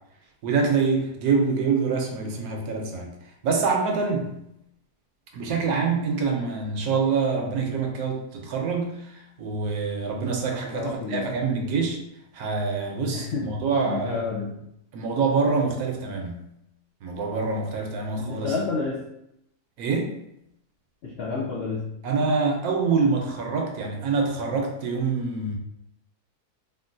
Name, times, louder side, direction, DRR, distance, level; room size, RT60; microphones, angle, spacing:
voice 1, 0.4-3.2 3.4-4.4 5.3-12.0 12.3-14.2 14.9-16.4 17.0-18.6 19.8-20.2 22.0-25.6, right 4 dB, 75° right, 1 dB, 1.0 m, -25 dB
voice 2, 10.7-11.3 13.1-13.5 13.8-14.6 18.2-19.0 21.0-21.9, left 4 dB, 90° left, -3 dB, 0.5 m, -30 dB
3.6 x 2.3 x 2.6 m, 0.79 s
omnidirectional pair, 1.7 m